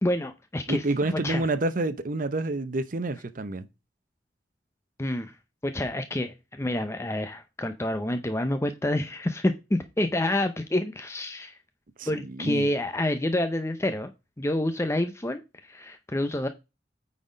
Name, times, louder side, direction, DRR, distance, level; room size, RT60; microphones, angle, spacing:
voice 1, 0.0-0.8 1.1-1.5 5.0-5.3 5.6-11.5 12.1-14.1 14.4-16.5, left 1 dB, 15° left, 0.6 m, -28 dB
voice 2, 0.7-3.7 12.0-12.7, right 2 dB, 50° right, 0.7 m, -28 dB
9.0 x 4.2 x 5.0 m
head